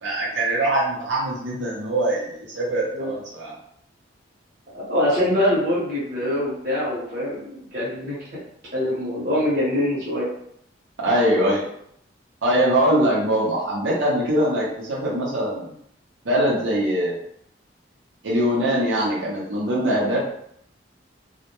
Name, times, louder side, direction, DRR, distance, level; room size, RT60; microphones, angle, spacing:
voice 1, 0.0-3.5 11.0-11.7 12.4-15.7 16.2-17.2 18.2-20.2, right 1 dB, 85° right, -5 dB, 0.6 m, -22 dB
voice 2, 4.9-8.3 8.7-10.3, left 1 dB, 50° right, -9 dB, 0.8 m, -24 dB
2.1 x 2.0 x 2.9 m, 0.70 s
head